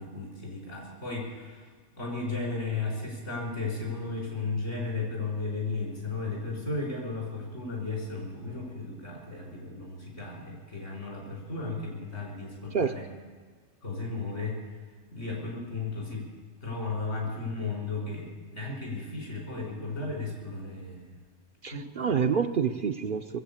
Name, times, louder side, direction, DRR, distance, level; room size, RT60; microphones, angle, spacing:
voice 1, 0.0-1.7 1.9-13.1 13.8-14.8 15.1-16.3 16.6-21.2 21.7-22.2, left 3 dB, 75° left, -1 dB, 5.3 m, -35 dB
voice 2, 21.6-23.4, right 6 dB, 55° right, 7 dB, 0.7 m, -27 dB
21.0 x 7.9 x 8.6 m, 1.5 s
omnidirectional pair, 1.2 m